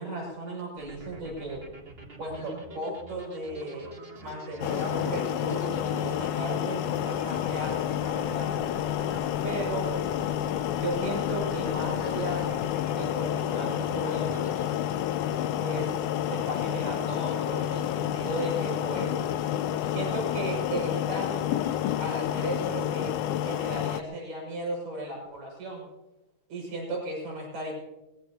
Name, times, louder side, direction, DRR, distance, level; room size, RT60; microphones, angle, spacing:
voice 1, 0.0-1.6 2.2-3.9 4.2-8.5 9.4-9.9 10.8-12.5 12.9-14.5 15.6-15.9 16.3-19.2 19.9-21.5 22.0-23.1 23.4-25.9 26.5-27.7, right 1 dB, 90° right, -2 dB, 8.0 m, -35 dB
sound 1, 0.8-14.7, right 2 dB, 20° right, 2.1 m, -45 dB
sound 2, 4.6-24.0, left 11 dB, 80° left, 2.2 m, -29 dB
23.0 x 20.0 x 2.9 m, 1.0 s
omnidirectional pair, 3.7 m